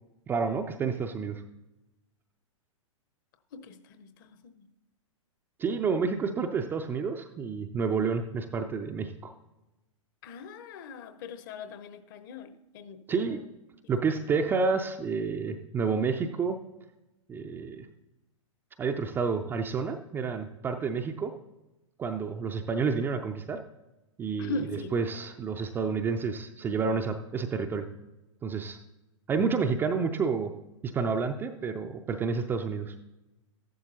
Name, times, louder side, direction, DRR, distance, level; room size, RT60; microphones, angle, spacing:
voice 1, 0.3-1.4 5.6-9.3 13.1-13.4 13.9-16.6 17.3-17.9 18.8-21.3 22.0-23.6 24.2-27.9 28.4-28.8 29.3-30.5 30.8-32.9, right 5 dB, 10° right, 0.4 m, -29 dB
voice 2, 3.5-4.5 10.2-13.3 14.0-14.1 24.4-24.9, left 3 dB, 40° left, 0.9 m, -40 dB
14.0 x 11.0 x 2.7 m
figure-of-eight pair, 105°, 17 cm